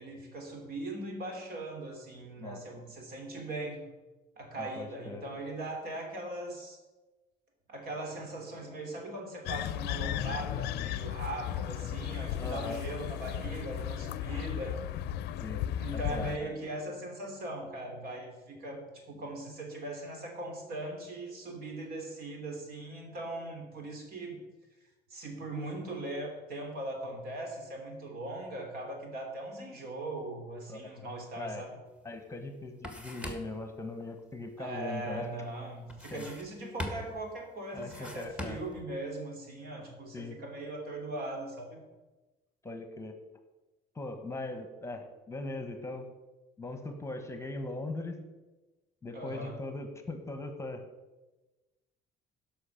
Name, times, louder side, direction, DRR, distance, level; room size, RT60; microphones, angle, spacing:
voice 1, 0.0-3.9 4.4-6.8 7.7-14.8 15.8-24.4 25.1-31.8 34.6-41.8 49.1-49.6, right 2 dB, 65° right, 2 dB, 3.1 m, -40 dB
voice 2, 4.6-5.2 12.4-12.8 14.3-14.4 15.4-15.6 15.9-16.5 30.7-31.1 31.4-31.6 32.0-35.3 36.1-36.2 37.7-38.6 40.1-40.4 42.6-43.2 43.9-46.1 46.6-48.2 49.0-50.8, left 2 dB, 15° left, 6 dB, 1.2 m, -40 dB
sound 1, 9.4-16.4, left 11 dB, 75° left, 0.5 m, -35 dB
sound 2, 32.0-32.1 32.4-33.7 35.9-36.5 36.8-37.3 37.8-38.8, left 1 dB, 5° right, 1.6 m, -41 dB
11.0 x 6.0 x 7.0 m, 1.1 s
cardioid pair, 110°, 17 cm